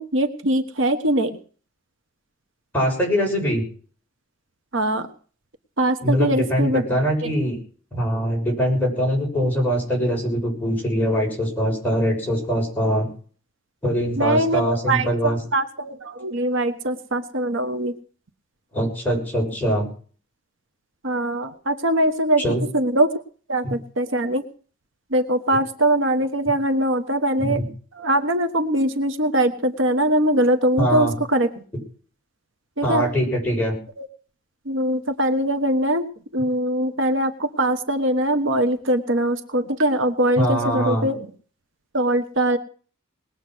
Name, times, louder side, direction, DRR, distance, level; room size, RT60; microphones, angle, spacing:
voice 1, 0.0-1.3 4.7-5.1 5.8-6.8 7.2-7.3 14.2-17.9 21.0-22.4 22.7-23.1 23.5-24.4 25.1-27.6 28.0-31.5 32.8-33.0 34.0-34.1 34.7-36.1 36.3-41.3 41.9-42.6, right 1 dB, 75° right, 8 dB, 1.4 m, -22 dB
voice 2, 2.7-3.6 6.0-7.6 7.9-13.1 13.8-15.4 18.7-19.9 22.4-22.7 23.6-23.8 27.4-27.7 30.8-31.2 32.8-33.8 40.4-41.1, equal, 10° left, -2 dB, 6.9 m, -22 dB
20.5 x 8.4 x 6.3 m, 0.42 s
head